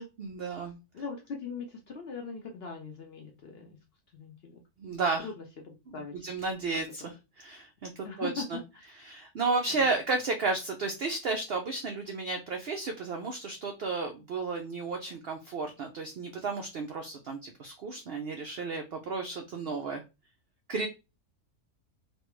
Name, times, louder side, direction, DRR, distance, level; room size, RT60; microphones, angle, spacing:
voice 1, 0.0-0.8 4.8-5.3 5.9-8.6 9.0-20.0 20.7-20.9, right 3 dB, 75° right, 5 dB, 0.5 m, -33 dB
voice 2, 0.9-3.8 4.1-4.6 4.9-6.2 7.0-7.1 8.0-8.6 9.8-9.9, left 4 dB, 60° left, 2 dB, 0.6 m, -41 dB
3.2 x 2.2 x 3.0 m, 0.26 s
omnidirectional pair, 1.6 m